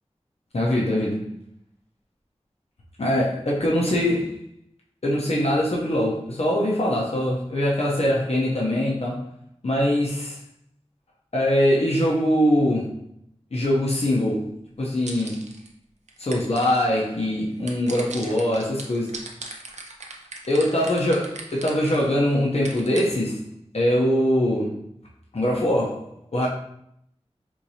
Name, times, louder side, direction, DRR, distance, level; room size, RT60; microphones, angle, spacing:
voice 1, 0.5-1.2 3.0-4.4 5.0-9.2 9.6-10.4 11.3-12.9 13.5-14.4 14.8-15.4 16.2-19.1 20.5-23.4 23.7-24.7 25.3-26.5, left 1 dB, 65° left, -4 dB, 0.7 m, -22 dB
sound 1, 14.9-15.7 16.1-16.8 17.7-22.2 22.6-23.2, right 3 dB, 85° right, 0.5 m, -38 dB
4.5 x 2.6 x 2.7 m, 0.74 s
wide cardioid pair, 60°, 11 cm